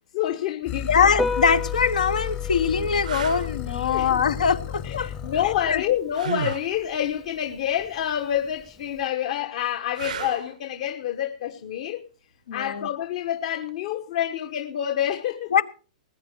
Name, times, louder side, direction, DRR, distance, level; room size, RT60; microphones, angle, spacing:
voice 1, 0.1-1.1 3.9-4.2 4.8-12.1 12.5-15.5, left 11 dB, 55° left, 1.4 m, -28 dB
sound 1, 0.7-5.9, left 11 dB, 35° left, 1.1 m, -33 dB
voice 2, 0.9-5.3 5.7-5.8 12.5-12.9 15.5-15.6, left 6 dB, 85° left, 1.3 m, -22 dB
Piano, 1.1-9.1, left 2 dB, 5° left, 0.7 m, -36 dB
sound 2, 1.6-1.7 2.3-2.4 3.0-3.5 6.1-6.7 9.9-10.6 13.5-13.7, right 9 dB, 80° right, 0.6 m, -32 dB
20.0 x 9.3 x 4.6 m
hypercardioid pair, 140°, 4 cm